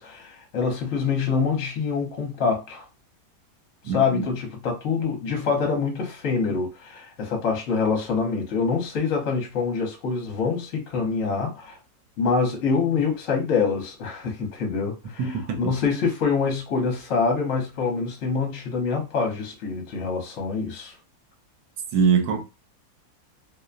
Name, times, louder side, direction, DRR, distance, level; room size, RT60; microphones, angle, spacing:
voice 1, 0.0-2.9 3.9-11.8 12.2-20.9, left 5 dB, 60° left, 1.1 m, -25 dB
voice 2, 3.8-4.2 15.2-15.8 21.9-22.4, right 6 dB, 85° right, 1.1 m, -23 dB
2.7 x 2.1 x 2.4 m
omnidirectional pair, 1.7 m